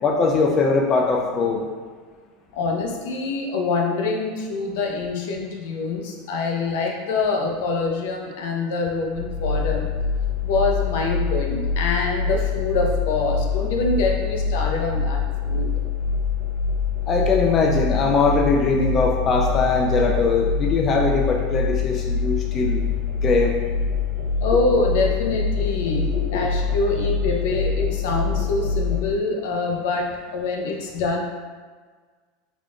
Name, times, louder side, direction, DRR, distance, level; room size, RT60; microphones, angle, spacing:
voice 1, 0.0-1.6 17.1-22.8 23.2-23.5 26.3-26.4, left 3 dB, 30° left, 0 dB, 0.4 m, -21 dB
voice 2, 2.5-9.9 10.4-15.8 24.4-31.2, left 3 dB, 70° left, 1 dB, 0.6 m, -25 dB
sound 1, 9.1-29.0, left 5 dB, 50° right, 0.6 m, -25 dB
3.6 x 2.3 x 3.7 m, 1.5 s
supercardioid pair, 135°, 0 cm